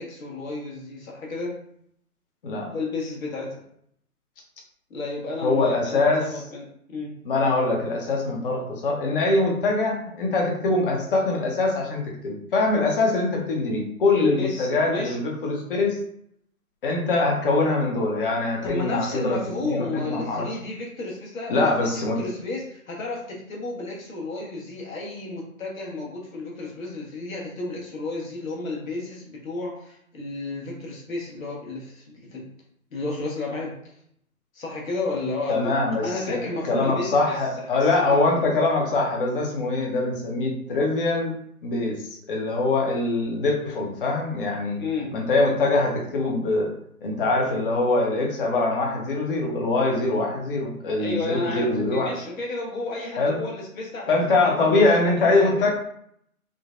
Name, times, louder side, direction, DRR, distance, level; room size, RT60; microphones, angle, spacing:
voice 1, 0.0-1.6 2.7-3.6 4.9-7.2 14.2-15.2 18.6-32.5 32.9-33.8 34.5-35.7 36.0-37.3 37.7-38.4 44.8-45.1 51.0-54.2 54.5-55.7, left 2 dB, 65° left, -2 dB, 1.3 m, -32 dB
voice 2, 5.4-6.4 7.2-16.0 16.8-20.5 21.5-22.2 35.5-41.3 41.6-44.8 45.1-46.7 47.0-52.1 53.2-53.4 54.1-55.7, left 2 dB, 35° left, 0 dB, 0.8 m, -23 dB
3.8 x 2.2 x 2.5 m, 0.69 s
hypercardioid pair, 150°, 44 cm